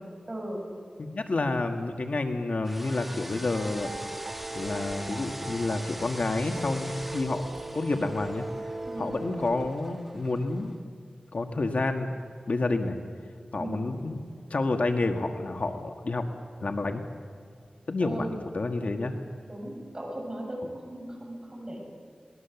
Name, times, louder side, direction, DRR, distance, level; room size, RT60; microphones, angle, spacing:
voice 1, 0.3-0.6 8.8-9.1 13.6-13.9 18.0-18.4 19.4-21.8, right 1 dB, 30° right, 0 dB, 7.9 m, -37 dB
voice 2, 1.0-3.9 4.5-7.4 7.7-8.4 9.0-10.7 11.3-13.0 13.5-14.2 14.5-16.2 16.6-17.0 17.9-18.3 18.5-19.1, left 2 dB, 60° left, 5 dB, 1.7 m, -29 dB
sound 1, 2.6-10.8, equal, 5° right, 1.4 m, -43 dB
sound 2, 3.5-9.7, right 2 dB, 50° right, 1.3 m, -38 dB
24.0 x 20.0 x 7.1 m, 2.3 s
wide cardioid pair, 75°, 3 cm